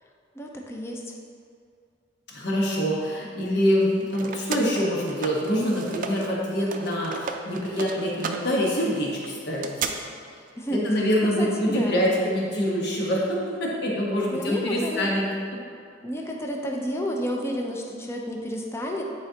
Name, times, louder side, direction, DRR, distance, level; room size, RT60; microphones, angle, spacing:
voice 1, 0.4-1.0 10.6-10.9 11.4-12.1 14.3-15.1 16.0-19.0, equal, 15° left, 0 dB, 0.6 m, -31 dB
voice 2, 2.3-9.7 10.7-15.6, equal, 65° left, -4 dB, 1.2 m, -25 dB
sound 1, 3.7-6.3 6.6-9.9, right 5 dB, 45° right, 0.4 m, -34 dB
9.6 x 4.3 x 2.8 m, 2.3 s
head